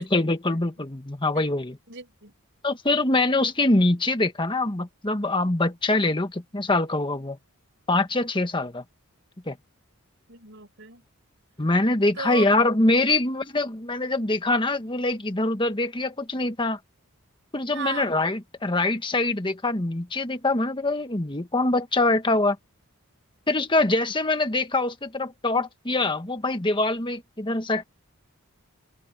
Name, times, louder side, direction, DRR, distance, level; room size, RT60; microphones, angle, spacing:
voice 1, 0.0-1.8 2.6-7.4 7.9-8.8 9.5-9.6 11.6-16.8 17.5-22.6 23.5-27.8, left 2 dB, 20° left, 1.4 m, -24 dB
voice 2, 1.9-2.3 10.3-11.0 12.1-12.5 17.7-18.1, right 5 dB, 55° right, 6.5 m, -36 dB
head